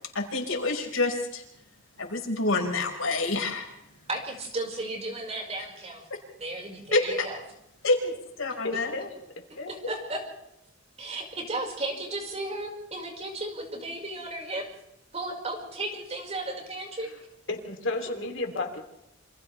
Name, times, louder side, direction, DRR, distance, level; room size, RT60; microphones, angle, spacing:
voice 1, 0.1-1.4 2.0-3.7 6.9-7.3 7.8-8.9, left 2 dB, 80° left, 1 dB, 5.2 m, -27 dB
voice 2, 4.1-6.0 6.4-7.4 8.7-8.8 9.7-10.2 11.0-14.7 15.1-17.1 18.5-18.6, right 2 dB, 30° right, 1 dB, 5.3 m, -34 dB
voice 3, 8.6-9.1 9.6-9.7 17.5-18.8, left 2 dB, 65° left, 3 dB, 3.2 m, -32 dB
28.5 x 27.0 x 3.4 m, 0.80 s
head